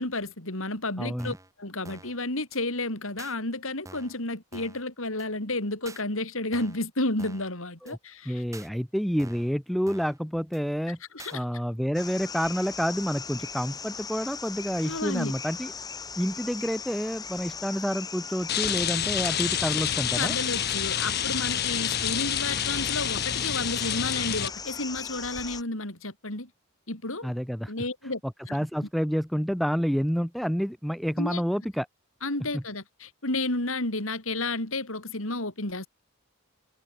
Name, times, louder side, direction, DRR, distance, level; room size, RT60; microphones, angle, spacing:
voice 1, 0.0-8.4 11.1-11.4 14.8-15.3 20.2-26.5 26.9-27.3 27.7-28.2 28.5-28.6 31.2-31.4 32.2-35.9, left 2 dB, 75° left, 4.8 m, -31 dB
voice 2, 1.0-1.4 7.8-8.0 8.3-11.0 11.3-15.7 16.2-20.3 27.2-27.7 28.5-31.9 32.5-32.6, equal, ahead, 0.6 m, -29 dB
sound 1, 1.2-1.5 1.8-2.2 2.5-2.6 3.2-3.3 3.9-4.2 4.5-4.8 5.2-5.3 5.9-6.0 6.5-6.9 7.2-7.5 7.9-8.0 8.5-8.7 9.2-9.5 9.9-10.2 10.5-10.6 11.2-11.4, right 2 dB, 15° right, 2.8 m, -47 dB
sound 2, 11.9-25.6, left 5 dB, 20° left, 1.4 m, -39 dB
Rain, 18.5-24.5, left 10 dB, 45° left, 0.9 m, -28 dB
head